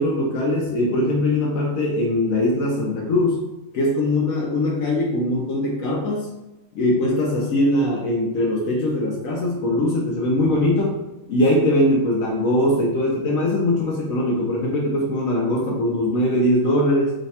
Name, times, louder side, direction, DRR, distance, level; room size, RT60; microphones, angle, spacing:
voice 1, 0.0-3.4 3.7-6.3 6.7-17.1, left 1 dB, 70° left, -2 dB, 1.0 m, -21 dB
3.2 x 2.1 x 4.1 m, 0.99 s
omnidirectional pair, 1.5 m